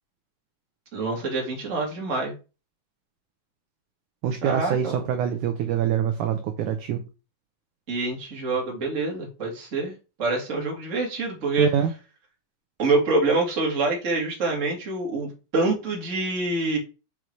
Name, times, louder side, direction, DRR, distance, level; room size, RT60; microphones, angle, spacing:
voice 1, 0.9-2.3 4.4-5.0 7.9-9.9 10.2-11.7 12.8-16.8, right 3 dB, 25° right, 1.7 m, -26 dB
voice 2, 4.2-7.0 11.6-11.9, right 9 dB, 80° right, 1.8 m, -25 dB
6.3 x 5.3 x 4.6 m
omnidirectional pair, 4.4 m